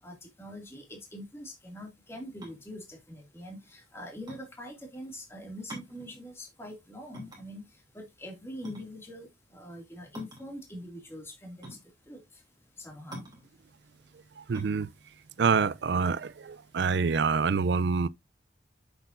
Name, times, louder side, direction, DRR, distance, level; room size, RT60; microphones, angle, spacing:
voice 1, 0.0-7.6 7.9-9.3 9.5-11.8 12.1-12.2 12.8-13.2, left 1 dB, 15° left, 2.2 m, -43 dB
sound 1, 2.4-16.6, right 1 dB, 20° right, 2.8 m, -48 dB
voice 2, 14.4-14.9 15.4-18.1, right 5 dB, 65° right, 0.4 m, -26 dB
7.9 x 6.8 x 2.5 m
head